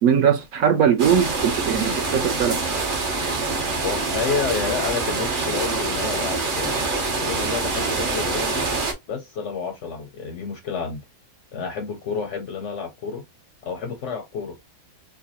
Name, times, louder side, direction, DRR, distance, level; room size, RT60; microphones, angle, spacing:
voice 1, 0.0-2.6, right 8 dB, 70° right, 1.0 m, -20 dB
sound 1, 1.0-8.9, right 3 dB, 45° right, 0.8 m, -25 dB
voice 2, 3.8-8.6 9.1-11.0 11.5-13.2 13.6-14.5, left 5 dB, 65° left, 0.8 m, -30 dB
4.4 x 2.1 x 2.9 m
omnidirectional pair, 1.7 m